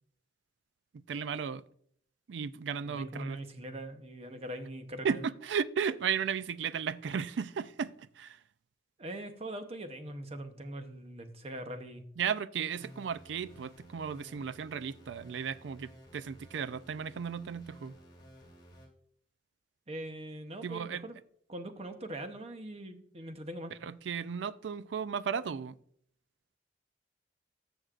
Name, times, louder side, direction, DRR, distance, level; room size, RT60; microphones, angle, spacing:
voice 1, 1.1-1.6 2.3-3.4 5.0-8.4 12.2-17.9 20.6-21.0 23.8-25.8, right 6 dB, 75° right, 0.4 m, -35 dB
voice 2, 2.8-5.2 9.0-12.0 19.9-21.2 21.5-23.7, right 1 dB, 35° right, 0.8 m, -42 dB
sound 1, 12.8-18.9, equal, 25° left, 2.3 m, -55 dB
14.0 x 6.4 x 2.4 m
head